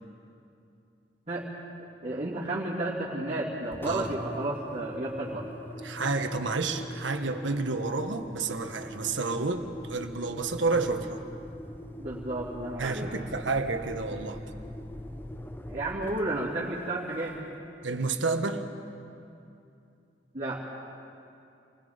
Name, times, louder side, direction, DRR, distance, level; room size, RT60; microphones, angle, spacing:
voice 1, 2.0-5.5 12.0-13.1 15.7-17.4 20.3-20.6, right 2 dB, 35° right, -9 dB, 2.8 m, -32 dB
Engine, 3.7-17.7, left 1 dB, 10° left, 0.7 m, -43 dB
voice 2, 5.8-11.2 12.8-14.4 17.8-18.6, right 3 dB, 90° right, 6 dB, 1.4 m, -30 dB
29.0 x 20.5 x 5.2 m, 2.6 s
head